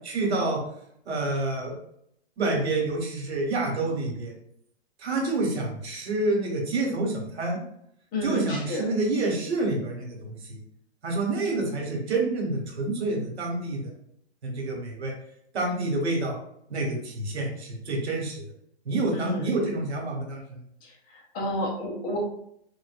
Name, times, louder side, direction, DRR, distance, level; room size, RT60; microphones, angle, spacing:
voice 1, 0.1-0.6 1.1-1.7 2.4-4.3 5.0-7.6 8.2-10.6 11.0-13.9 14.4-15.1 15.5-16.3 16.7-18.4 18.8-20.4, right 2 dB, 80° right, 0 dB, 1.4 m, -28 dB
voice 2, 8.1-8.9 19.1-19.5 20.8-22.2, left 1 dB, 25° left, -1 dB, 0.8 m, -31 dB
3.8 x 2.5 x 2.5 m, 0.71 s
hypercardioid pair, 135°, 33 cm